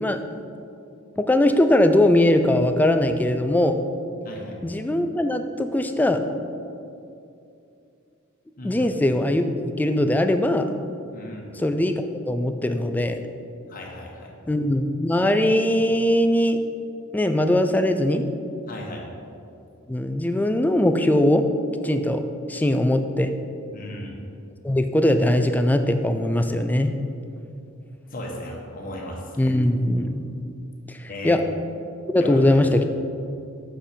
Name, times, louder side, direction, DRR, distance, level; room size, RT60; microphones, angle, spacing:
voice 1, 1.2-3.7 4.6-6.2 8.6-10.6 11.6-13.2 14.5-16.6 17.1-18.2 19.9-21.4 21.8-23.3 24.6-26.9 29.4-30.3 30.9-31.4 32.1-32.8, left 1 dB, 10° left, 7 dB, 0.3 m, -21 dB
voice 2, 4.2-4.6 8.6-8.9 11.1-11.5 13.7-14.3 18.7-19.0 23.7-24.1 28.1-29.6 31.1-31.4 32.2-32.6, left 1 dB, 45° left, -1 dB, 1.1 m, -35 dB
7.2 x 5.1 x 4.4 m, 2.6 s
head